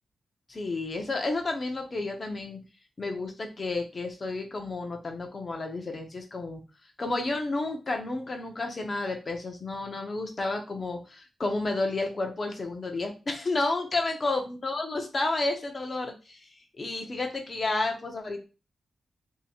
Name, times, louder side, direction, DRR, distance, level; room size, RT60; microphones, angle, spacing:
voice 1, 0.5-2.6 3.0-6.6 7.0-16.5 16.8-18.4, left 2 dB, 30° left, 3 dB, 0.7 m, -31 dB
2.8 x 2.8 x 4.2 m, 0.32 s
wide cardioid pair, 165°, 0 cm